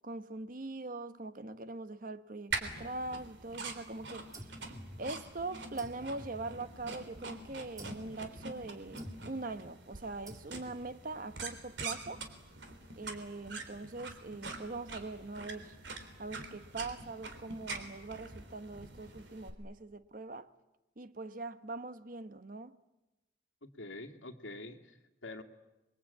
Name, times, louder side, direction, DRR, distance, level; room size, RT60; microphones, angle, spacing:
voice 1, 0.0-4.5 5.0-12.3 13.0-15.8 16.2-20.5 21.0-22.8, right 2 dB, 45° right, 1.0 m, -42 dB
sound 1, 2.5-19.5, right 3 dB, 65° right, 3.5 m, -45 dB
sound 2, 4.3-5.4 5.8-7.1 7.8-8.2 9.0-9.5 10.3-10.9, equal, 15° right, 1.6 m, -51 dB
voice 2, 23.6-25.4, left 2 dB, 85° left, 2.3 m, -46 dB
27.5 x 23.0 x 8.6 m
head